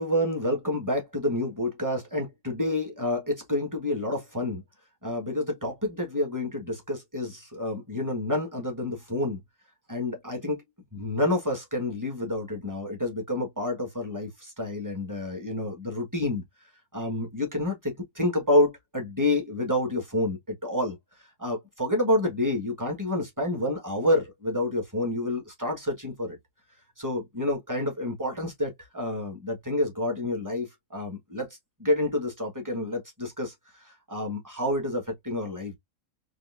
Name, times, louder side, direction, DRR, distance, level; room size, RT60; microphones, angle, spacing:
voice 1, 0.0-4.6 5.0-9.4 9.9-10.6 10.9-16.4 16.9-26.4 27.0-31.5 31.8-35.8, left 1 dB, 15° right, 1.1 m, -29 dB
4.2 x 2.7 x 2.4 m
omnidirectional pair, 1.7 m